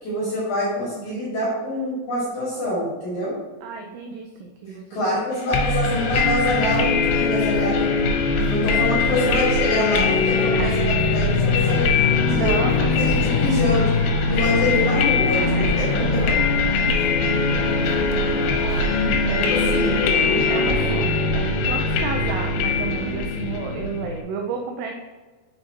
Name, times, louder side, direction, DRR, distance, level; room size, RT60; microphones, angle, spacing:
voice 1, 0.0-3.4 4.9-7.9 8.5-11.9 12.2-12.5 12.9-13.9 14.2-16.2 19.5-20.2, left 1 dB, 50° left, -8 dB, 2.7 m, -25 dB
voice 2, 3.6-4.9 10.1-10.7 12.3-13.5 15.4-19.0 19.2-19.7 20.3-24.9, right 5 dB, 80° right, 2 dB, 2.5 m, -33 dB
sound 1, 5.5-24.2, left 4 dB, 85° left, 3.1 m, -21 dB
sound 2, 5.8-19.2, right 2 dB, 45° right, 1.5 m, -42 dB
sound 3, 11.5-21.1, right 1 dB, 65° right, 1.4 m, -34 dB
6.7 x 5.8 x 2.8 m, 1.3 s
omnidirectional pair, 5.2 m